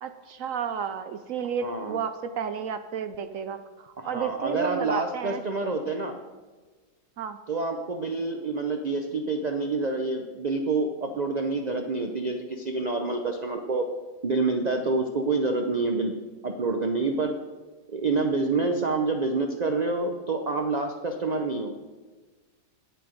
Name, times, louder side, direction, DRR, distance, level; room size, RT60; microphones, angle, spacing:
voice 1, 0.0-5.4 7.2-7.4, right 7 dB, 65° right, 10 dB, 0.9 m, -32 dB
voice 2, 1.6-2.0 4.0-6.2 7.5-13.9 14.2-16.1 16.4-17.4 17.9-21.7, right 3 dB, 45° right, 5 dB, 0.5 m, -27 dB
18.0 x 6.9 x 5.1 m, 1.3 s
omnidirectional pair, 1.7 m